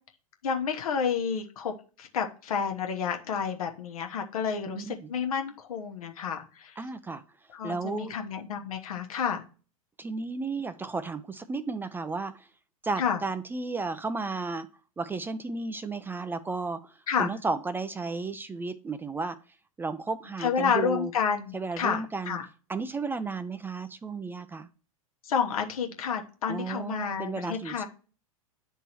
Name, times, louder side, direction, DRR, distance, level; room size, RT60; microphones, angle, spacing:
voice 1, 0.4-6.8 7.5-9.4 13.0-13.2 17.1-17.3 20.4-22.4 25.2-27.8, left 6 dB, 75° left, 4 dB, 1.1 m, -30 dB
voice 2, 4.7-5.1 6.8-7.2 7.6-8.1 10.0-12.5 12.8-14.7 15.0-19.4 19.8-21.1 21.5-22.4 22.7-24.7 26.5-27.8, right 4 dB, 10° right, 11 dB, 0.4 m, -33 dB
9.8 x 3.7 x 2.9 m, 0.37 s
hypercardioid pair, 105°, 18 cm